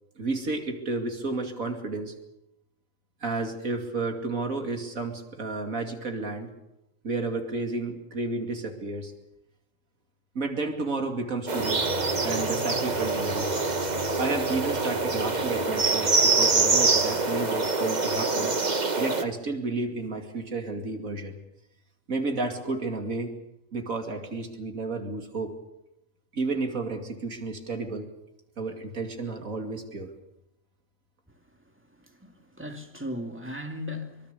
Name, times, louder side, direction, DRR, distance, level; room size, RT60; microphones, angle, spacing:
voice 1, 0.2-2.1 3.2-6.5 7.0-9.1 10.3-11.8 12.2-13.5 14.2-18.5 19.0-21.4 22.1-23.3 23.7-25.5 26.3-28.1 28.6-30.1, right 3 dB, 90° right, 3.0 m, -31 dB
sound 1, 11.5-19.2, right 3 dB, 35° right, 1.5 m, -25 dB
Drum, 11.6-18.1, left 3 dB, 20° left, 2.7 m, -42 dB
voice 2, 32.0-34.3, left 1 dB, 10° right, 2.2 m, -37 dB
24.0 x 23.5 x 6.9 m
omnidirectional pair, 1.4 m